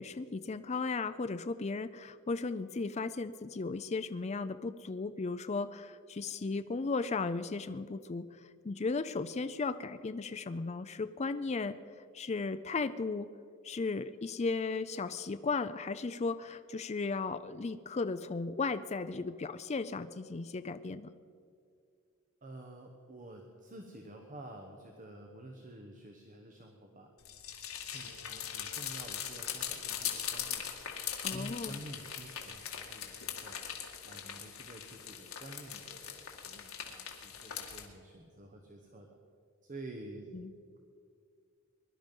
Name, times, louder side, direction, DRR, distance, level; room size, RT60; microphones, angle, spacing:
voice 1, 0.0-8.3 8.6-11.8 12.1-13.3 13.6-21.1 31.2-31.8 40.3-40.5, left 4 dB, 30° left, 11 dB, 0.4 m, -35 dB
voice 2, 22.4-27.1 27.9-30.6 31.3-33.6 34.0-39.2 39.6-40.3, right 1 dB, 35° right, 3 dB, 1.1 m, -50 dB
sound 1, 27.2-37.9, left 9 dB, 80° left, 1.9 m, -41 dB
21.5 x 11.5 x 5.3 m, 2.3 s
head